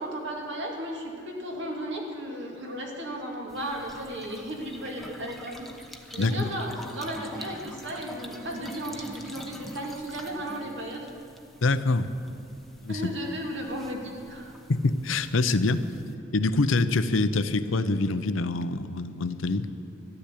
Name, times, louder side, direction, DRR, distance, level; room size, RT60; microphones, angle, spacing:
voice 1, 0.0-5.7 6.1-11.1 12.9-14.5, right 1 dB, 65° right, 0 dB, 2.6 m, -35 dB
sound 1, 3.5-16.2, left 1 dB, ahead, 0.9 m, -45 dB
voice 2, 6.2-6.5 11.6-12.1 12.8-13.1 14.7-15.9 16.3-19.7, left 3 dB, 80° left, 12 dB, 0.7 m, -25 dB
13.5 x 11.5 x 8.4 m, 2.6 s
head